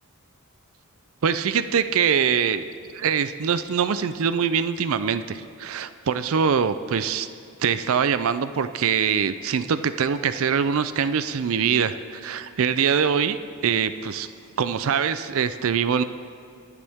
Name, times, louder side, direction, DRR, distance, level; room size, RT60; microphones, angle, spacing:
voice 1, 1.2-2.6 2.9-7.3 7.6-13.4 13.6-14.3 14.6-16.0, right 7 dB, 65° right, 12 dB, 0.4 m, -23 dB
24.5 x 8.2 x 3.5 m, 2.5 s
head